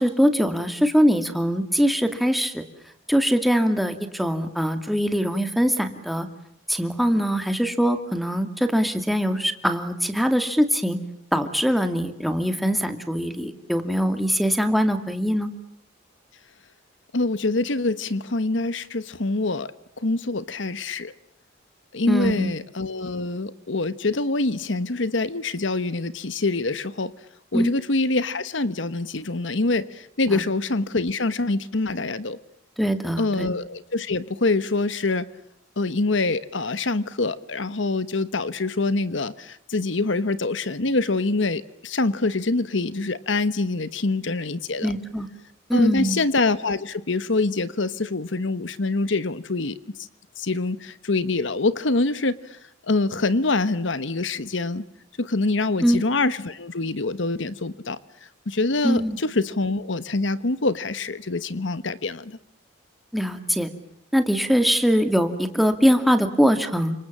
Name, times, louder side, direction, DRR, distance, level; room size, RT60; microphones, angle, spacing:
voice 1, 0.0-2.6 3.1-6.3 6.7-11.0 11.3-15.5 22.1-22.5 27.5-27.7 30.3-30.4 32.8-33.5 44.8-45.3 45.7-46.2 55.8-56.0 58.8-59.2 63.1-63.7 64.1-66.9, equal, ahead, 7 dB, 2.3 m, -22 dB
voice 2, 17.1-21.1 21.9-27.1 27.5-32.4 33.2-35.3 35.8-44.9 45.7-50.1 50.4-52.6 52.8-54.8 55.2-58.0 58.5-62.4, left 3 dB, 75° left, 15 dB, 1.2 m, -25 dB
30.0 x 26.5 x 7.4 m, 0.71 s
head